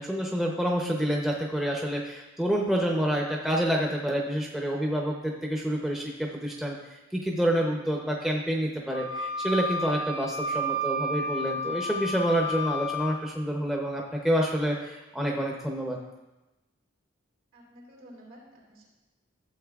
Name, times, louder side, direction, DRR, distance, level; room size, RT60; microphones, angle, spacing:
voice 1, 0.0-6.8 7.2-16.0, equal, ahead, -1 dB, 0.6 m, -28 dB
Wind instrument woodwind instrument, 8.9-13.2, equal, 80° left, 0.7 m, -31 dB
voice 2, 17.5-18.9, equal, 80° right, -3 dB, 2.9 m, -51 dB
12.5 x 7.5 x 2.4 m, 1.1 s
head